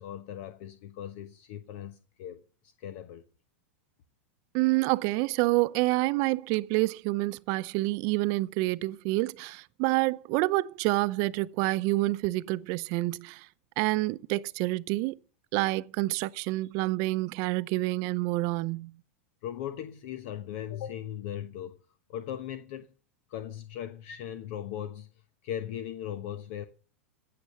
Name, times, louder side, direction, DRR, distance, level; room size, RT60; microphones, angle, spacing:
voice 1, 0.0-3.2 19.4-21.7 22.1-22.9 23.3-25.1 25.4-26.6, left 10 dB, 60° left, 1.1 m, -38 dB
voice 2, 4.5-13.5 13.8-15.2 15.5-18.9, right 20 dB, 50° right, 0.6 m, -28 dB
16.0 x 6.9 x 6.7 m
hypercardioid pair, 110°, 7 cm